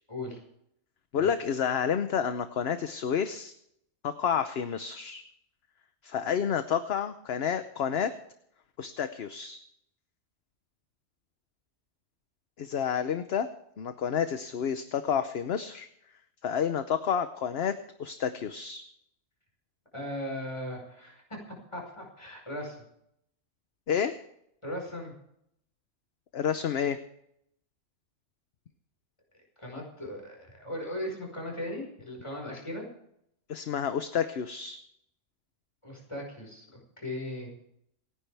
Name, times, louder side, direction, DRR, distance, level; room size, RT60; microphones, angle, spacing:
voice 1, 0.1-0.4 1.2-1.3 19.9-21.4 21.7-22.8 24.6-25.1 29.6-32.9 35.8-36.7 37.0-37.5, left 1 dB, 25° left, 0 dB, 5.1 m, -38 dB
voice 2, 1.1-3.5 4.0-5.2 6.0-8.1 8.8-9.6 12.6-13.5 13.8-15.9 16.4-18.8 23.9-24.2 26.3-27.0 33.5-34.8, left 7 dB, 60° left, 10 dB, 1.0 m, -29 dB
27.5 x 10.0 x 3.4 m, 0.75 s
omnidirectional pair, 1.3 m